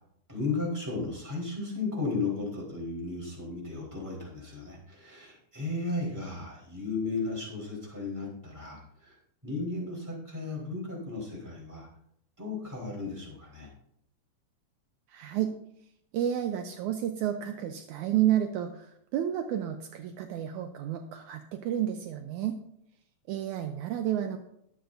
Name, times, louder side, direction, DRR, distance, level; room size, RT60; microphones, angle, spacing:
voice 1, 0.3-9.2 9.4-11.9 12.4-13.7, left 3 dB, 5° right, -4 dB, 3.7 m, -35 dB
voice 2, 15.1-15.5 16.1-22.6 23.3-24.4, right 11 dB, 80° right, 5 dB, 2.0 m, -30 dB
22.0 x 7.9 x 2.6 m, 0.73 s
omnidirectional pair, 3.7 m